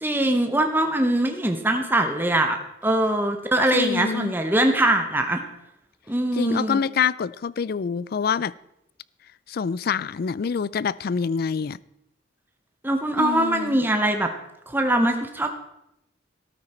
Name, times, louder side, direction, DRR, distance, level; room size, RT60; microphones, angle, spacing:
voice 1, 0.0-2.6 2.8-5.4 6.1-6.8 12.8-14.3 14.7-15.5, right 1 dB, 10° right, 5 dB, 0.9 m, -22 dB
voice 2, 3.7-4.3 6.3-8.5 9.5-11.8 13.2-13.8, left 6 dB, 55° left, 21 dB, 0.4 m, -26 dB
13.0 x 13.0 x 4.3 m, 0.81 s
head